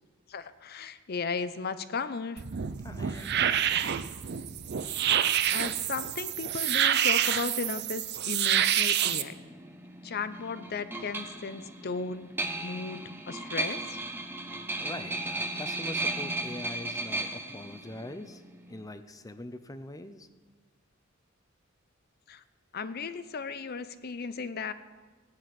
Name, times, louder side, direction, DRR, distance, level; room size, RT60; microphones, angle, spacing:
voice 1, 0.3-2.4 5.5-9.3 10.0-12.3 12.6-13.0 13.3-14.0 22.3-22.4 22.7-24.7, left 5 dB, 50° left, 12 dB, 0.6 m, -35 dB
sound 1, 2.4-9.2, right 10 dB, 55° right, 0.6 m, -27 dB
voice 2, 2.8-4.1 14.8-18.4 18.7-20.3, left 1 dB, 15° left, 10 dB, 0.7 m, -43 dB
sound 2, 9.1-18.8, right 2 dB, 10° right, 0.8 m, -36 dB
15.5 x 9.7 x 5.9 m, 1.4 s
head